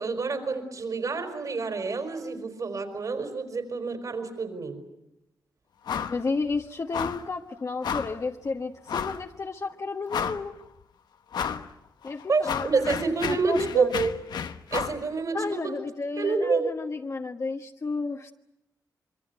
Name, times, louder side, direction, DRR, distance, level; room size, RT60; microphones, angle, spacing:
voice 1, 0.0-4.8 12.3-14.1 14.7-15.8 16.2-16.7, right 4 dB, 55° right, 7 dB, 4.7 m, -28 dB
sound 1, 5.9-6.2 6.5-6.6 6.9-7.3 7.8-8.2 8.9-9.2 9.7-9.8 10.1-10.6 11.3-11.7 12.0-15.0, left 7 dB, 85° left, 1.1 m, -32 dB
voice 2, 6.1-10.5 12.0-14.0 15.3-18.3, left 4 dB, 45° left, 3 dB, 1.3 m, -32 dB
25.5 x 23.0 x 8.1 m, 0.84 s
cardioid pair, 80°, 7 cm